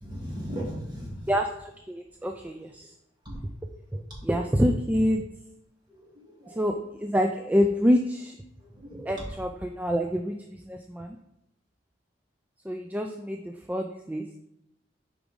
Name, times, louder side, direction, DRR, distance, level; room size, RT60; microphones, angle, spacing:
voice 1, 0.0-1.2 3.2-3.3 5.9-6.6 8.7-9.1, equal, 25° right, -5 dB, 2.5 m, -37 dB
voice 2, 1.3-2.9 3.9-5.2 6.5-8.4 8.9-11.2 12.6-14.2, equal, 10° right, 4 dB, 0.3 m, -27 dB
6.9 x 5.0 x 3.7 m, 0.82 s
head